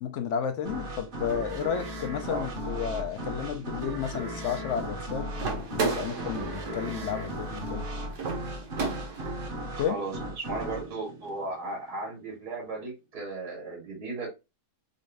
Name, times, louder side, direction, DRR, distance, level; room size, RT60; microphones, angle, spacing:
voice 1, 0.0-7.8 9.8-10.0, left 8 dB, 70° left, 0.7 m, -32 dB
sound 1, 0.6-12.1, right 1 dB, 40° right, 0.9 m, -36 dB
sound 2, 5.4-9.5, right 4 dB, 60° right, 1.2 m, -34 dB
voice 2, 9.8-14.3, right 2 dB, 80° right, 2.0 m, -36 dB
4.0 x 2.5 x 3.2 m
omnidirectional pair, 1.7 m